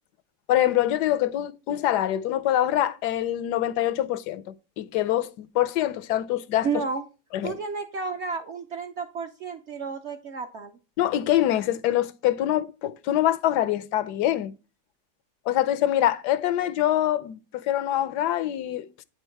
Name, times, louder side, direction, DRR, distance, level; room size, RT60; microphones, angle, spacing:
voice 1, 0.5-4.4 4.8-6.8 7.3-7.6 11.0-14.5 15.5-18.9, left 12 dB, 85° left, 1.2 m, -24 dB
voice 2, 6.6-7.0 7.4-10.7, right 5 dB, 65° right, 0.7 m, -31 dB
8.8 x 4.5 x 4.5 m
omnidirectional pair, 1.7 m